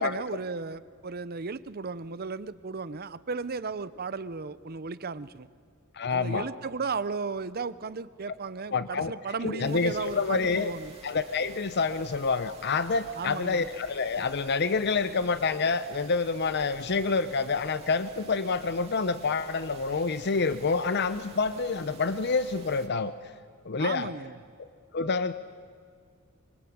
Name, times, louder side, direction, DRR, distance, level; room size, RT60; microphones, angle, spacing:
voice 1, 0.0-5.5 6.1-10.9 13.2-13.7 23.8-24.4, right 4 dB, 50° right, 16 dB, 0.8 m, -35 dB
voice 2, 5.9-6.5 8.7-9.1 9.4-10.7 11.0-23.1 23.6-24.1 24.6-24.7 24.9-25.3, left 4 dB, 55° left, 12 dB, 0.7 m, -27 dB
sound 1, 9.6-22.9, right 3 dB, 30° right, 2.8 m, -51 dB
25.5 x 24.0 x 8.7 m, 2.1 s
head